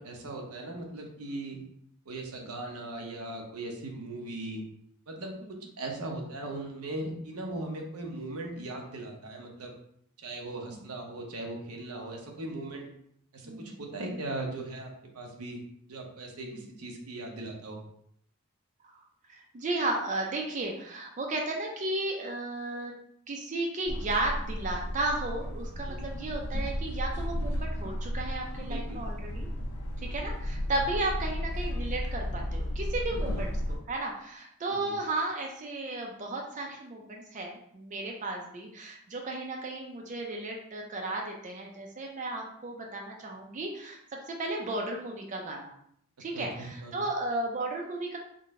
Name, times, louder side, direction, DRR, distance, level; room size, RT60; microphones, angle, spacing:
voice 1, 0.0-1.6 2.1-4.6 5.1-5.3 5.8-9.7 10.2-12.8 13.3-15.6 15.9-17.8 25.8-26.0 28.7-29.0 30.0-30.2 33.2-33.4 34.7-34.9 46.3-47.0, right 2 dB, 90° right, 1 dB, 0.8 m, -39 dB
voice 2, 19.3-22.9 23.3-29.5 30.0-44.0 44.3-45.7 46.2-48.2, right 2 dB, 35° right, 1 dB, 0.5 m, -34 dB
sound 1, 23.9-33.8, equal, 85° left, 0.6 m, -34 dB
3.8 x 2.2 x 3.6 m, 0.69 s
head